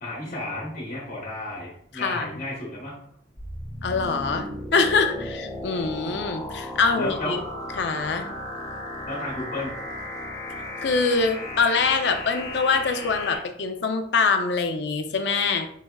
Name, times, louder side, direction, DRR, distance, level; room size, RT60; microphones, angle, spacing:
voice 1, 0.0-2.9 5.2-5.3 7.0-7.4 9.1-9.8, left 2 dB, 45° left, -3 dB, 1.1 m, -33 dB
voice 2, 1.9-2.4 3.8-7.4 7.8-8.3 10.8-15.7, left 4 dB, 65° left, 6 dB, 0.5 m, -24 dB
sound 1, 3.4-13.4, left 1 dB, 15° left, 0.7 m, -35 dB
4.1 x 3.4 x 2.3 m, 0.65 s
head